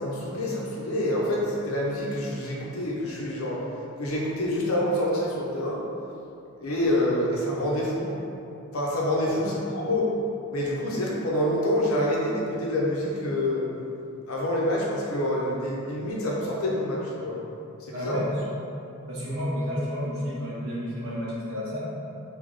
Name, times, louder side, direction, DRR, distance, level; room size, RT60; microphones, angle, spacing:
voice 1, 0.0-3.6 4.0-5.8 6.6-8.2 8.7-10.1 10.5-13.7 14.3-17.4 17.8-18.2, left 1 dB, 90° left, -4 dB, 0.8 m, -27 dB
voice 2, 17.9-18.5 19.1-21.9, equal, 85° right, -8 dB, 1.2 m, -31 dB
3.5 x 2.9 x 3.7 m, 2.7 s
head